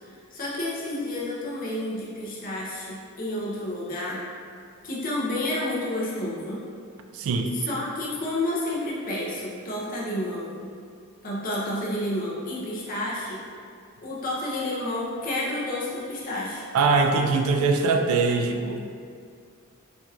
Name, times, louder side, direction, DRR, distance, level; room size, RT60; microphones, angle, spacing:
voice 1, 0.0-4.2 4.8-6.6 7.5-10.6 11.2-13.4 14.0-16.6, left 1 dB, 40° left, -6 dB, 0.7 m, -30 dB
voice 2, 7.1-7.5 16.7-18.8, right 4 dB, 70° right, 4 dB, 0.3 m, -22 dB
4.4 x 2.9 x 2.4 m, 2.2 s
head